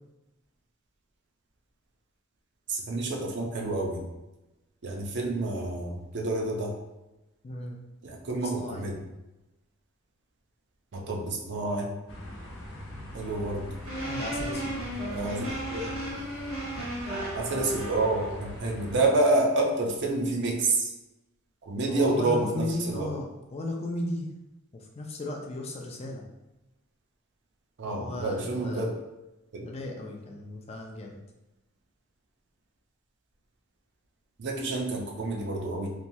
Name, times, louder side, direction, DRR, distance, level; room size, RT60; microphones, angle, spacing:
voice 1, 2.7-4.0 4.8-6.7 8.0-8.9 10.9-11.9 13.1-13.6 15.1-16.0 17.3-20.9 21.6-23.1 27.8-28.9 29.5-29.6 34.4-35.9, right 2 dB, 55° right, 0 dB, 0.5 m, -28 dB
voice 2, 7.4-7.8 8.3-8.9 14.0-14.8 21.9-24.3 24.9-26.2 27.8-28.8 29.6-31.2, left 1 dB, 30° left, 1 dB, 0.4 m, -35 dB
sound 1, 12.1-19.0, left 1 dB, 75° left, 0.6 m, -42 dB
sound 2, 13.8-18.4, right 1 dB, 75° right, 1.2 m, -35 dB
3.0 x 2.3 x 2.6 m, 1.0 s
head